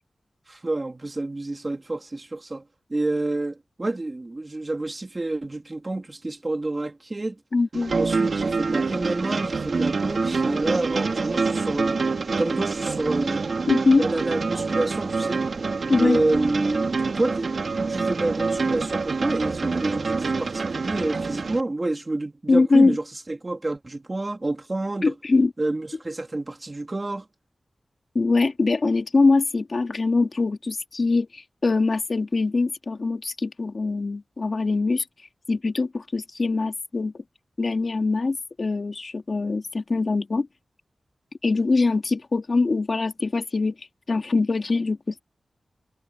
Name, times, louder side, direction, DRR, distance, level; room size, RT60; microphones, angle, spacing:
voice 1, 0.5-2.6 2.9-7.4 8.0-12.0 12.4-13.5 14.0-15.5 15.9-25.1 25.6-27.3, right 2 dB, 35° right, 3.2 m, -28 dB
voice 2, 7.5-7.9 13.7-14.1 15.9-16.2 22.5-23.0 25.0-25.5 28.1-35.0 35.5-37.1 37.6-40.5 41.4-43.7 44.1-45.2, left 3 dB, 55° left, 2.6 m, -22 dB
sound 1, 7.7-21.6, right 4 dB, 65° right, 2.6 m, -26 dB
wide cardioid pair, 65°, 0 cm